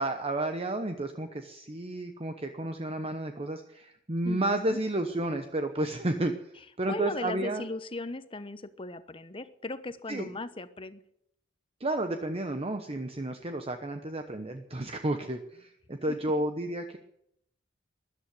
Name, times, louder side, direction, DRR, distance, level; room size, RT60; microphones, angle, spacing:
voice 1, 0.0-6.3 6.8-7.6 10.1-10.3 11.8-17.0, right 1 dB, 30° right, 7 dB, 1.0 m, -31 dB
voice 2, 4.2-4.8 6.9-11.0 16.1-16.2, left 2 dB, 30° left, 12 dB, 1.0 m, -37 dB
13.5 x 11.5 x 9.3 m, 0.75 s
head